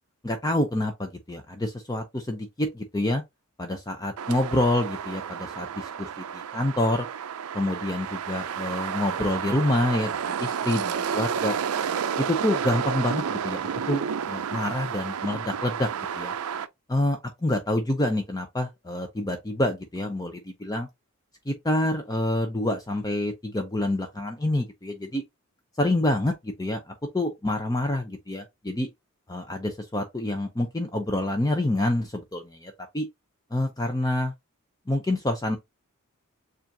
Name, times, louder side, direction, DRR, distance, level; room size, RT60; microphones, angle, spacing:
voice 1, 0.2-3.2 3.6-7.1 7.5-11.6 12.2-15.9 16.2-16.3 16.9-20.9 21.5-25.2 25.8-28.9 29.3-33.1 33.5-34.3 34.9-35.6, left 1 dB, 15° left, 0.5 m, -27 dB
sound 1, 4.2-16.7, right 7 dB, 80° right, 0.4 m, -31 dB
7.1 x 2.5 x 2.7 m
head